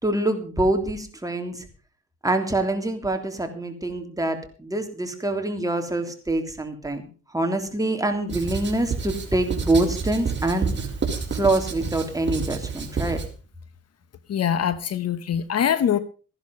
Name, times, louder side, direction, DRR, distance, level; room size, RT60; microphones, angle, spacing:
voice 1, 0.0-1.6 2.2-7.1 7.3-10.7 11.3-13.2, right 2 dB, 10° right, 4 dB, 3.3 m, -25 dB
Writing, 8.3-13.3, right 5 dB, 35° right, 4.2 m, -29 dB
voice 2, 14.3-16.0, left 9 dB, 55° left, 14 dB, 1.2 m, -23 dB
15.0 x 11.0 x 5.4 m, 0.38 s
cardioid pair, 90°, 30 cm